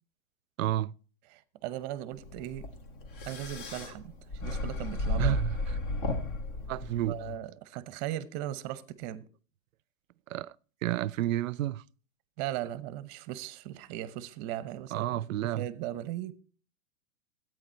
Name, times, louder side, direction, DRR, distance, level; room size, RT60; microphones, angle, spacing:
voice 1, 0.6-0.9 5.2-5.6 6.7-7.2 10.3-10.5 10.8-11.8 14.9-15.7, right 14 dB, 90° right, 0.5 m, -30 dB
voice 2, 1.3-2.7 3.3-5.4 7.1-9.3 12.4-16.3, right 13 dB, 30° right, 0.8 m, -38 dB
sound 1, 2.2-7.4, left 2 dB, 45° left, 1.9 m, -34 dB
13.0 x 9.0 x 4.4 m
hypercardioid pair, 150°, 38 cm